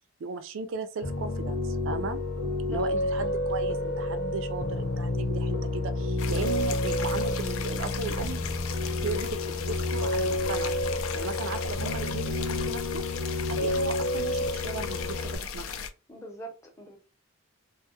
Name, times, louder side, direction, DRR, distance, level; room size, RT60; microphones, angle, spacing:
voice 1, 0.2-2.2 2.7-8.4 9.0-10.7 11.1-13.0 13.5-15.8, right 5 dB, 70° right, 0.3 m, -36 dB
Piano, 1.0-15.4, left 1 dB, 65° left, 0.7 m, -30 dB
voice 2, 2.4-2.8 16.1-17.0, right 2 dB, 15° left, 0.6 m, -43 dB
sound 1, 6.2-15.9, left 5 dB, 90° left, 0.4 m, -37 dB
2.2 x 2.0 x 2.8 m
head